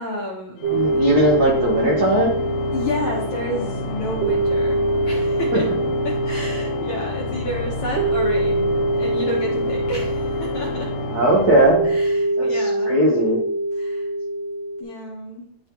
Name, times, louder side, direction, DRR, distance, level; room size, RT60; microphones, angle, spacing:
voice 1, 0.0-0.6 2.7-5.7 6.0-10.9 11.8-13.0 13.7-14.1 14.8-15.5, left 1 dB, 65° left, -2 dB, 1.3 m, -30 dB
Organ, 0.6-12.4, left 3 dB, 85° left, 2.1 m, -30 dB
sound 1, 0.6-14.8, right 1 dB, 70° right, 2.1 m, -24 dB
voice 2, 0.7-2.4 5.5-5.6 11.1-11.8 12.4-12.5 12.9-13.4, right 1 dB, 90° right, -3 dB, 0.8 m, -18 dB
10.5 x 3.7 x 2.9 m, 0.68 s
omnidirectional pair, 3.5 m